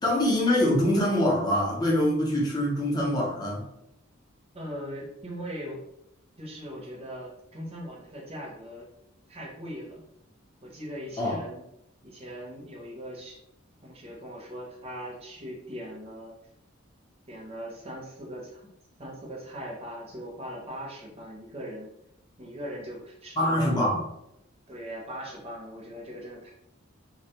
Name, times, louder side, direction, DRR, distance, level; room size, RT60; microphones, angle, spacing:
voice 1, 0.0-3.6 11.2-11.4 23.4-24.0, left 1 dB, 20° left, -4 dB, 0.6 m, -24 dB
voice 2, 4.5-5.8 6.4-8.9 9.3-10.0 10.6-11.6 12.0-13.4 13.8-16.3 17.3-18.7 19.0-21.9 22.4-23.9 24.7-26.5, equal, 30° right, -3 dB, 0.7 m, -40 dB
2.2 x 2.2 x 2.8 m, 0.79 s
head